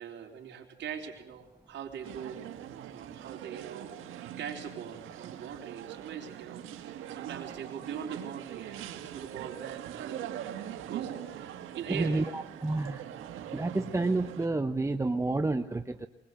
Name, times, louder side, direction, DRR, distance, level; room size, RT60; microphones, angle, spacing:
voice 1, 0.0-2.6 2.9-10.2 10.9-12.2, right 8 dB, 65° right, 2 dB, 3.9 m, -42 dB
sound 1, 2.0-14.5, right 11 dB, 85° right, 1.8 m, -42 dB
voice 2, 11.9-13.0 13.5-16.1, right 2 dB, 15° right, 8 dB, 0.8 m, -30 dB
22.0 x 20.0 x 7.9 m, 0.94 s
cardioid pair, 90°, 20 cm